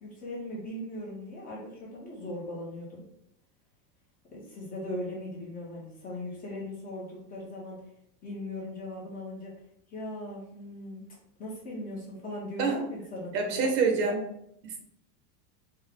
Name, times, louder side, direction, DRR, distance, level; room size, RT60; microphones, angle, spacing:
voice 1, 0.0-3.0 4.3-7.8 8.2-9.5 9.9-11.1 11.4-13.5, left 1 dB, 20° left, -5 dB, 1.1 m, -39 dB
voice 2, 13.3-14.2 14.6-14.9, right 4 dB, 75° right, 3 dB, 1.1 m, -27 dB
4.5 x 2.4 x 3.5 m, 0.77 s
supercardioid pair, 160°, 47 cm